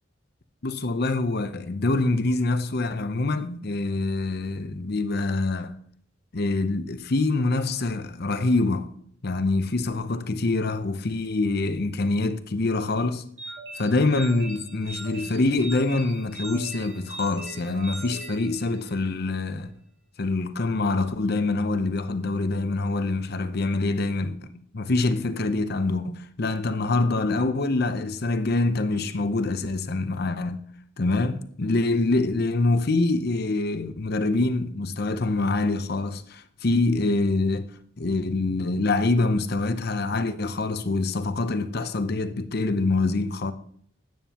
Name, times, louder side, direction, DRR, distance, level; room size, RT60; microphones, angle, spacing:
voice 1, 0.6-5.8 6.3-8.9 9.2-13.2 13.8-19.7 20.2-30.6 31.0-37.7 38.0-43.5, left 2 dB, 50° left, 0.8 m, -25 dB
sound 1, 13.4-19.1, right 2 dB, 85° right, 2.8 m, -40 dB
12.5 x 9.2 x 3.0 m
head